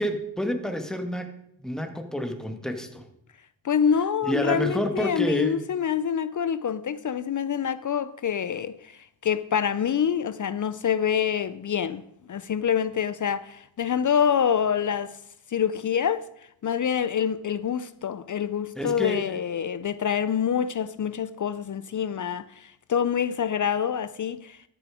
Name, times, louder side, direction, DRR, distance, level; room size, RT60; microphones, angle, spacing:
voice 1, 0.0-1.3 1.6-3.0 4.2-5.6 18.7-19.4, equal, ahead, 1.6 m, -28 dB
voice 2, 3.6-12.0 12.3-15.2 15.5-16.2 16.6-24.6, left 8 dB, 40° left, 0.5 m, -26 dB
13.0 x 7.0 x 4.9 m
cardioid pair, 70°, 47 cm